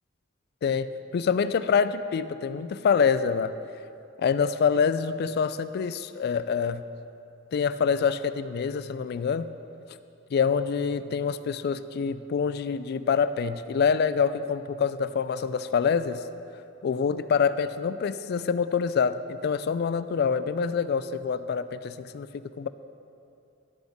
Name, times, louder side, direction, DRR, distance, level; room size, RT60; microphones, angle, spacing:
voice 1, 1.1-3.5 4.2-6.8 7.5-9.5 10.3-16.2 16.8-22.7, left 6 dB, 55° left, 14 dB, 0.3 m, -26 dB
12.0 x 7.8 x 3.6 m, 2.7 s
head